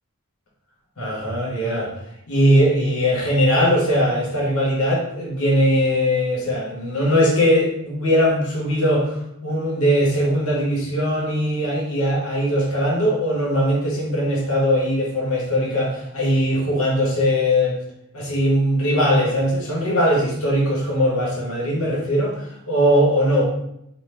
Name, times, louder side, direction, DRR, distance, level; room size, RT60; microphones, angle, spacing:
voice 1, 1.0-1.9 2.3-9.2 9.4-17.8 18.1-23.4, equal, 70° left, -3 dB, 1.0 m, -20 dB
3.2 x 2.1 x 3.2 m, 0.78 s
head